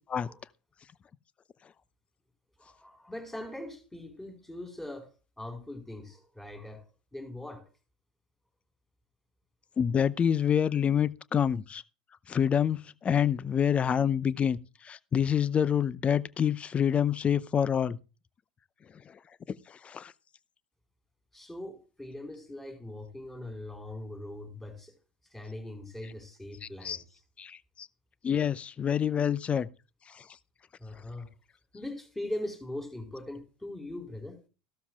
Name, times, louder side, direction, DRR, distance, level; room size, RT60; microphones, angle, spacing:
voice 1, 2.6-5.1 5.4-6.8 7.1-7.7 21.3-24.9 25.3-27.2 30.8-31.3 31.7-34.4, left 1 dB, 5° left, 4.8 m, -41 dB
voice 2, 9.8-11.8 12.3-14.6 14.8-18.0 19.5-20.1 26.6-27.0 27.4-27.9 28.2-29.7 30.1-30.2, left 8 dB, 25° left, 0.6 m, -27 dB
15.0 x 12.5 x 2.4 m
hypercardioid pair, 80°, 5 cm